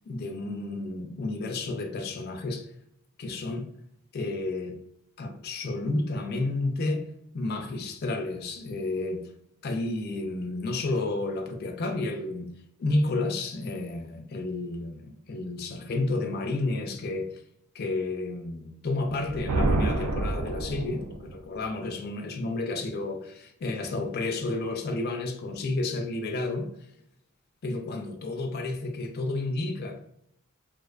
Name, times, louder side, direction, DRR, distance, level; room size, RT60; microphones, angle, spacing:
voice 1, 0.0-2.7 3.2-3.7 4.1-4.8 5.2-7.1 7.3-9.3 9.6-12.5 12.8-17.3 17.7-26.7 27.6-30.0, left 2 dB, 45° left, 0.3 m, -31 dB
Thunder, 19.1-21.4, right 2 dB, 80° right, 0.3 m, -28 dB
2.4 x 2.2 x 2.3 m
head